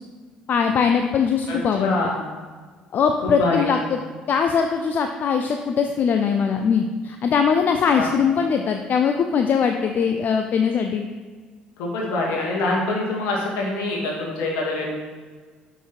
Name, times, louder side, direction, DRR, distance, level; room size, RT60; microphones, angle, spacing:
voice 1, 0.5-2.1 2.9-4.0 4.3-11.1, left 6 dB, 45° left, 5 dB, 0.5 m, -21 dB
voice 2, 1.5-2.1 3.4-3.7 8.0-8.1 11.8-15.0, left 2 dB, 65° left, -2 dB, 2.3 m, -25 dB
8.1 x 5.9 x 4.6 m, 1.5 s
figure-of-eight pair, 55°, 4 cm